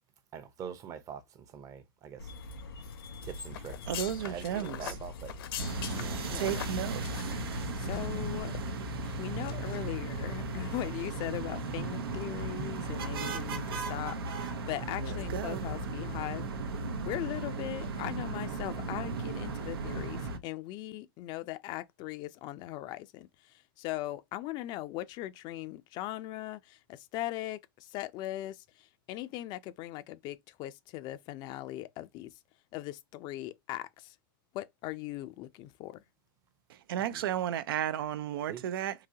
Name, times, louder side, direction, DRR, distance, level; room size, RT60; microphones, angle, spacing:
voice 1, 0.3-2.3 3.2-5.4 6.0-6.6 8.7-9.0 37.1-37.4 38.5-38.6, right 8 dB, 30° right, 0.7 m, -45 dB
sound 1, 2.2-8.4, left 1 dB, 90° left, 1.8 m, -44 dB
sound 2, 3.5-8.2 8.5-8.6 9.0-9.8 10.2-10.4 10.7-10.9 11.2-11.3, left 11 dB, 70° left, 0.9 m, -43 dB
voice 2, 3.9-4.8 6.3-7.2 15.0-15.6 36.9-38.9, right 10 dB, 75° right, 0.4 m, -33 dB
sound 3, 5.6-20.4, right 2 dB, 90° right, 0.8 m, -36 dB
voice 3, 6.2-6.6 7.8-8.5 9.2-16.4 17.0-32.3 32.7-34.1 34.5-36.0, left 15 dB, 40° left, 0.5 m, -39 dB
3.8 x 2.7 x 2.8 m
hypercardioid pair, 135°, 12 cm